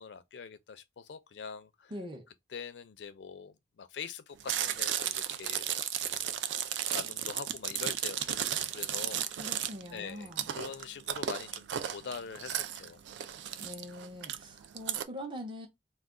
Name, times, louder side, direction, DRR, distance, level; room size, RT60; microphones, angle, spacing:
voice 1, 0.0-1.9 2.5-5.7 6.0-6.4 6.9-13.0, left 6 dB, 70° left, 0.4 m, -44 dB
voice 2, 1.9-2.3 9.4-10.5 13.6-15.7, equal, 30° right, 0.6 m, -43 dB
Chewing mastication, 4.4-15.0, right 10 dB, 75° right, 0.3 m, -34 dB
2.3 x 2.2 x 3.6 m
head